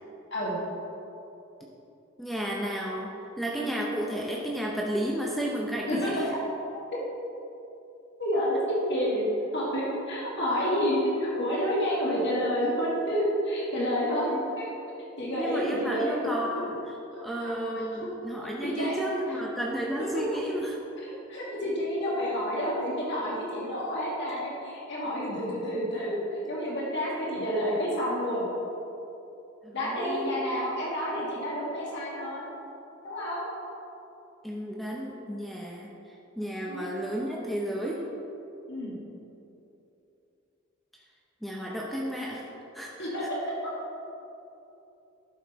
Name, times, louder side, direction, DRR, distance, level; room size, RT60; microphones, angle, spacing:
voice 1, 2.2-6.2 15.3-16.8 17.2-20.7 24.3-24.4 29.6-30.3 34.4-35.9 36.4-38.0 41.4-42.5 42.7-43.1, equal, ahead, -3 dB, 0.6 m, -32 dB
voice 2, 8.2-9.3 9.5-14.7 15.2-16.3 17.4-17.5 17.8-17.9 18.6-19.0 19.3-19.4 21.0-28.4 29.7-32.5 33.0-33.4 36.7-36.9 38.7-39.0 43.0-43.2, equal, 60° left, -6 dB, 1.9 m, -29 dB
11.0 x 6.4 x 4.1 m, 3.0 s
head